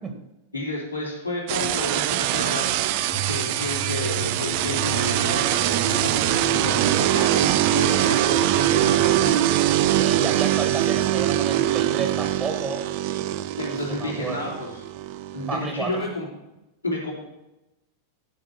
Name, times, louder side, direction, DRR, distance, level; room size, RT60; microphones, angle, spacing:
voice 1, 0.5-2.8 3.3-9.5 13.6-14.7 15.3-16.3 16.8-17.1, left 2 dB, 85° left, -4 dB, 3.2 m, -31 dB
sound 1, 1.5-16.0, right 13 dB, 45° right, 0.5 m, -23 dB
sound 2, 3.1-9.3, right 6 dB, 15° left, 1.4 m, -34 dB
voice 2, 10.0-12.8 13.7-14.5 15.5-16.1, right 5 dB, 20° right, 4 dB, 1.7 m, -31 dB
11.0 x 5.1 x 6.2 m, 0.94 s
figure-of-eight pair, 90°, 0 cm